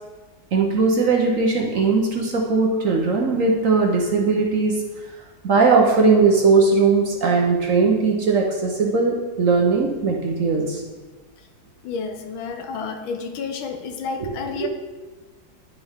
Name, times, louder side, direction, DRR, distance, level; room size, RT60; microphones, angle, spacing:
voice 1, 0.5-4.8 5.4-10.8 14.2-14.3 14.6-14.7, right 4 dB, 55° right, 0 dB, 1.0 m, -19 dB
voice 2, 11.8-14.7, left 5 dB, 90° left, 6 dB, 1.6 m, -30 dB
10.0 x 5.9 x 3.5 m, 1.3 s
omnidirectional pair, 2.1 m